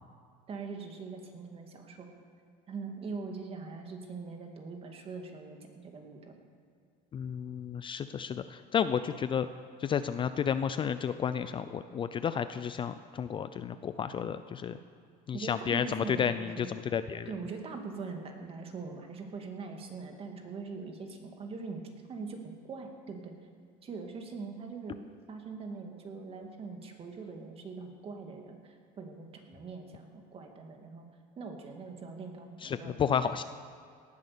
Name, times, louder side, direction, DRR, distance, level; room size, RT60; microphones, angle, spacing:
voice 1, 0.5-2.1 2.7-6.4 15.3-16.7 17.3-21.8 22.1-23.3 23.8-25.0 25.3-31.1 31.4-33.0, right 4 dB, 35° right, 3 dB, 2.1 m, -42 dB
voice 2, 7.1-9.5 9.8-14.8 15.3-17.3 32.6-33.4, left 7 dB, 30° left, 11 dB, 0.4 m, -32 dB
18.0 x 10.5 x 6.8 m, 2.2 s
cardioid pair, 135°, 18 cm